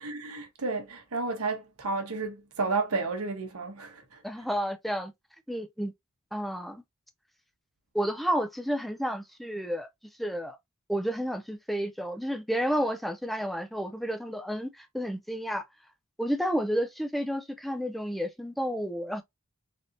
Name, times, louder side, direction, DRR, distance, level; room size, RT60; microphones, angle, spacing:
voice 1, 0.0-4.2, right 3 dB, 80° right, 0.9 m, -32 dB
voice 2, 4.2-5.1 5.5-5.9 6.3-6.8 7.9-9.9 10.2-10.6 10.9-15.6 16.2-19.2, equal, ahead, 0.3 m, -31 dB
3.4 x 2.7 x 2.4 m
head